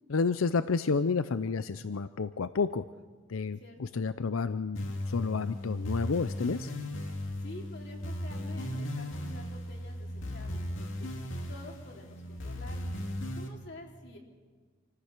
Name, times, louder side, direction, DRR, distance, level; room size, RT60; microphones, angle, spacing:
voice 1, 0.1-2.8 3.3-6.7, left 4 dB, 90° left, 13 dB, 0.6 m, -30 dB
voice 2, 3.6-4.0 7.4-12.9 13.3-14.2, left 1 dB, 55° left, 0 dB, 3.4 m, -49 dB
sound 1, 4.7-13.5, left 1 dB, 70° left, 2.6 m, -37 dB
27.5 x 15.0 x 6.7 m, 1.4 s
head